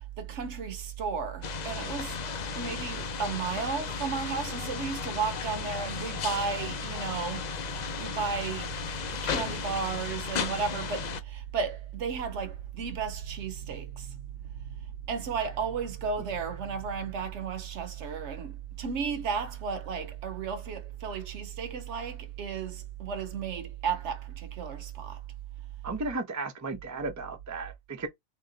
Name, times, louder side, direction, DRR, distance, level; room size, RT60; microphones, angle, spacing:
voice 1, 0.2-2.2 2.5-7.5 7.7-8.7 9.2-14.3 14.6-14.7 15.1-25.2, right 6 dB, 60° right, 1.0 m, -33 dB
sound 1, 1.4-11.2, left 8 dB, 80° left, 0.4 m, -35 dB
voice 2, 25.8-28.1, right 3 dB, 25° right, 0.4 m, -34 dB
3.2 x 2.9 x 3.8 m
omnidirectional pair, 1.4 m